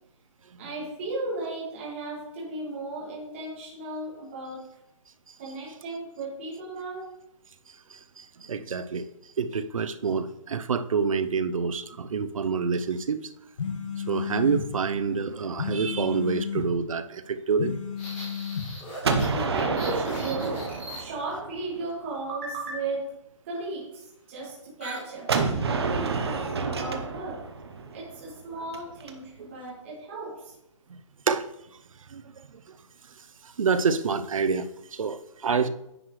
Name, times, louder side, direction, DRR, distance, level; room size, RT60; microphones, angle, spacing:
voice 1, 0.6-4.6 5.4-7.0 19.3-23.1 23.4-25.3 25.5-27.4 27.9-30.5, right 2 dB, 20° right, -6 dB, 2.1 m, -35 dB
voice 2, 7.9-9.1 9.4-13.3 14.0-17.8 29.4-29.5 31.3-31.5 32.1-32.8 33.4-35.7, right 5 dB, 80° right, 11 dB, 0.7 m, -27 dB
sound 1, 13.6-14.7 15.6-16.7 17.6-18.7, left 7 dB, 65° left, 1.8 m, -32 dB
sound 2, 18.0-21.4 24.8-25.1 25.3-25.6 26.0-26.4, equal, 15° left, 1.9 m, -40 dB
Gunshot gunfire, 19.0-21.9 25.3-29.1, right 4 dB, 50° right, 0.9 m, -29 dB
10.0 x 6.3 x 3.2 m, 0.83 s
hypercardioid pair, 180°, 17 cm